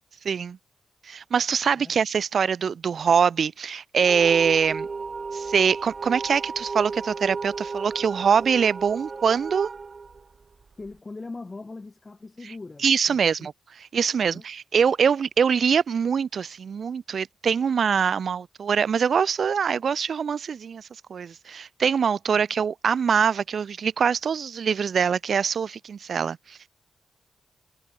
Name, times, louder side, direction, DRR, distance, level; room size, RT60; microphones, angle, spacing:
voice 1, 0.2-0.6 1.0-4.9 5.3-9.7 12.8-13.5 13.9-26.7, right 6 dB, 65° right, 0.8 m, -23 dB
sound 1, 4.0-10.9, right 4 dB, 45° right, 1.7 m, -34 dB
voice 2, 10.8-13.5 14.2-14.4 22.4-22.5, left 3 dB, 30° left, 5.2 m, -41 dB
cardioid pair, 75°, 0 cm